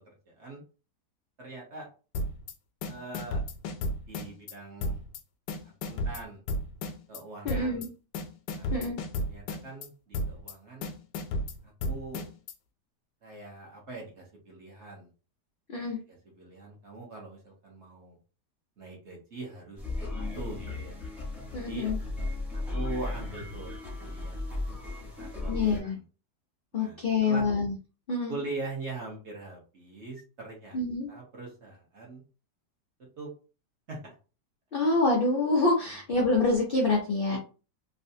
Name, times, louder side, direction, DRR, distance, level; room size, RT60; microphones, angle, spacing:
voice 1, 0.3-0.6 1.4-1.9 2.8-3.4 4.1-5.0 5.8-6.4 7.1-7.9 8.5-8.8 9.3-10.9 11.6-12.2 13.2-15.1 15.7-18.2 18.8-21.0 21.6-21.9 22.5-24.4 25.0-26.0 26.7-27.5 28.3-30.8 31.1-32.2 33.2-33.3 33.9-34.1 37.3-37.4, right 2 dB, 50° right, -1 dB, 1.1 m, -42 dB
sound 1, 2.1-2.5 2.8-4.5 4.8-5.2 5.5-7.2 7.5-7.9 8.1-9.9 10.1-10.5 10.8-12.5, left 1 dB, 90° left, 1.2 m, -33 dB
voice 2, 7.4-7.9 8.7-9.0 15.7-16.0 21.5-22.0 25.5-25.9 26.7-27.7 28.1-28.3 30.7-31.1 34.7-37.4, left 3 dB, 70° left, -1 dB, 0.5 m, -26 dB
sound 2, 19.8-25.8, left 2 dB, ahead, 0.5 m, -35 dB
3.2 x 2.5 x 2.6 m, 0.34 s
omnidirectional pair, 1.8 m